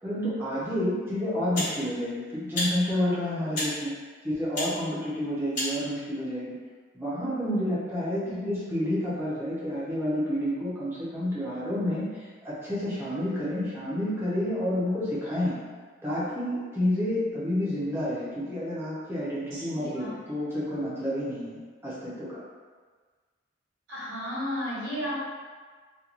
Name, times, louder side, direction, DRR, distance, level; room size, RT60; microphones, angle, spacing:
voice 1, 0.0-3.9 4.2-6.5 6.9-15.5 16.0-22.4, left 1 dB, 10° right, -11 dB, 0.8 m, -29 dB
sound 1, 0.6-0.7 1.5-1.8 2.5-2.7 3.5-3.7 4.5-4.7 5.5-5.7, left 1 dB, 40° left, 1.3 m, -30 dB
voice 2, 8.2-8.5 19.5-20.2 23.9-25.2, equal, 70° right, -9 dB, 1.2 m, -34 dB
2.9 x 2.5 x 2.5 m, 1.5 s
head